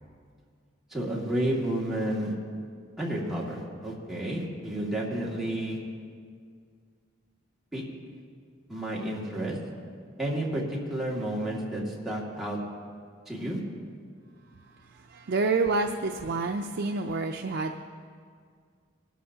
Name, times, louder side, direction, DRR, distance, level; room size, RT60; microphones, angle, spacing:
voice 1, 0.9-2.3 3.0-5.8 7.7-7.8 8.7-9.6 10.2-12.6 13.3-13.6, right 1 dB, ahead, -5 dB, 2.0 m, -31 dB
voice 2, 15.1-17.8, right 3 dB, 60° right, 3 dB, 0.5 m, -28 dB
21.0 x 12.5 x 2.8 m, 2.1 s
head